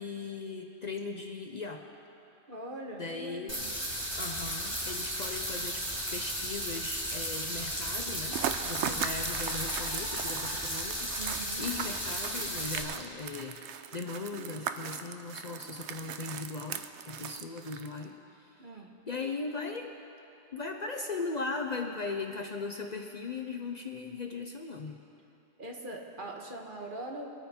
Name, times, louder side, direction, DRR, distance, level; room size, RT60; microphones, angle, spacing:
voice 1, 0.0-1.8 3.0-3.6 4.2-11.1 11.6-13.6 13.9-18.1 18.4-19.9 20.5-25.0, left 3 dB, 45° left, 3 dB, 0.7 m, -38 dB
voice 2, 2.5-3.7 11.2-11.7 18.6-18.9 25.6-27.3, right 1 dB, 50° right, 0 dB, 1.5 m, -42 dB
sound 1, 3.5-12.8, equal, 20° right, 2.6 m, -35 dB
sound 2, 8.3-18.1, right 8 dB, 80° right, 0.9 m, -39 dB
23.5 x 9.2 x 4.4 m, 2.8 s
omnidirectional pair, 1.2 m